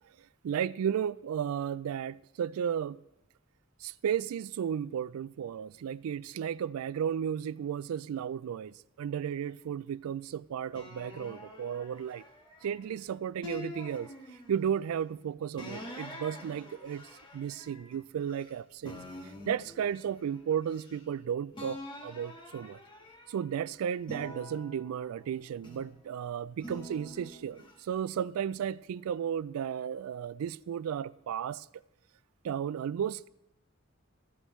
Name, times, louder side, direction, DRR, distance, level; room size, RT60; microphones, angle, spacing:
voice 1, 0.4-3.0 3.8-8.7 9.0-12.2 12.6-14.1 14.5-17.0 17.3-19.0 19.5-22.8 23.3-31.6 32.4-33.3, right 8 dB, 80° right, 0.3 m, -34 dB
sound 1, 10.7-12.9 13.4-14.8 15.6-18.5 18.8-21.2 21.5-23.5 24.0-26.0 26.6-27.7, left 1 dB, 20° left, 1.4 m, -46 dB
14.5 x 11.0 x 3.1 m
head